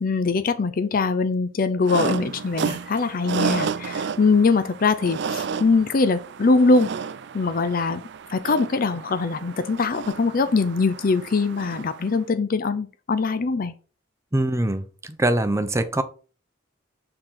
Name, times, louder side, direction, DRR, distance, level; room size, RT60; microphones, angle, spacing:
voice 1, 0.0-6.9 7.3-8.0 8.3-13.7, left 4 dB, 45° left, 11 dB, 0.5 m, -22 dB
sound 1, 1.8-12.2, right 6 dB, 60° right, 0.4 m, -32 dB
voice 2, 14.3-14.8 15.2-16.0, right 1 dB, 15° right, 9 dB, 0.6 m, -22 dB
6.8 x 3.8 x 5.6 m, 0.37 s
head